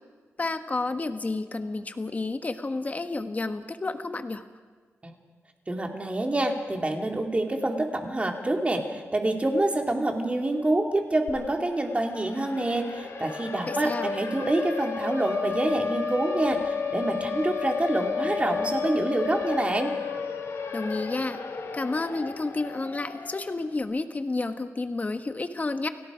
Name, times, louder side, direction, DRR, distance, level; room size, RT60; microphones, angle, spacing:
voice 1, 0.4-4.4 13.7-14.1 20.7-21.4 21.7-25.9, left 3 dB, 30° left, 8 dB, 1.4 m, -30 dB
voice 2, 5.7-19.9, right 1 dB, 25° right, 3 dB, 2.8 m, -27 dB
Siren, 11.3-11.4 11.7-23.7, left 5 dB, 70° left, 3.0 m, -32 dB
29.5 x 17.5 x 5.2 m, 1.5 s
wide cardioid pair, 90°, 5 cm